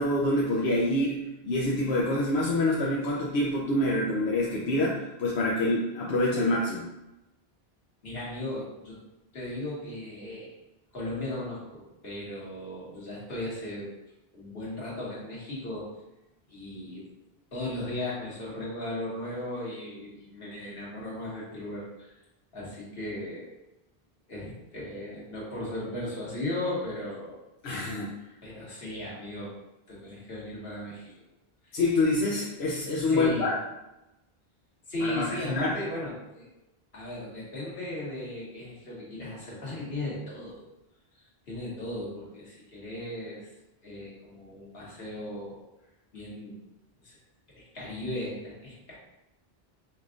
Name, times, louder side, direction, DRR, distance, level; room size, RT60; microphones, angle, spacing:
voice 1, 0.0-6.9 27.6-28.1 31.7-33.5 35.0-35.7, left 1 dB, 90° left, -4 dB, 0.9 m, -26 dB
voice 2, 8.0-9.0 9.3-10.5 10.9-13.9 14.3-15.9 16.5-17.0 17.5-22.1 22.5-23.5 24.3-27.4 28.4-29.5 29.9-31.1 33.1-33.5 34.9-36.5 36.9-40.6 41.5-43.5 43.8-45.6 46.1-46.6 47.0-47.1 47.7-49.0, left 1 dB, 70° left, -6 dB, 1.7 m, -36 dB
5.7 x 2.4 x 3.7 m, 0.95 s
omnidirectional pair, 1.0 m